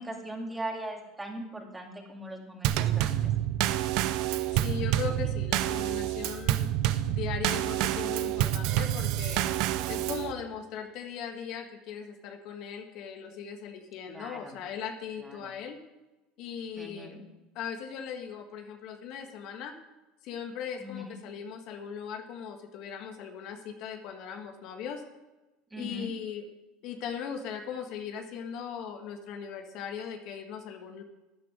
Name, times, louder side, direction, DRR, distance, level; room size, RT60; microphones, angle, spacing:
voice 1, 0.0-3.3 5.0-5.1 9.7-10.1 14.1-14.6 15.2-15.5 16.8-17.2 20.8-21.1 25.7-26.1, right 1 dB, 10° right, 2 dB, 2.4 m, -40 dB
Drum kit / Snare drum / Bass drum, 2.6-10.3, right 13 dB, 65° right, 0.7 m, -28 dB
voice 2, 4.5-6.7 7.1-9.5 9.9-15.8 16.4-17.2 17.6-19.7 20.2-25.0 25.7-26.5 26.8-31.0, left 7 dB, 65° left, 5 dB, 1.6 m, -39 dB
13.5 x 9.5 x 5.0 m, 1.1 s
supercardioid pair, 115°, 0 cm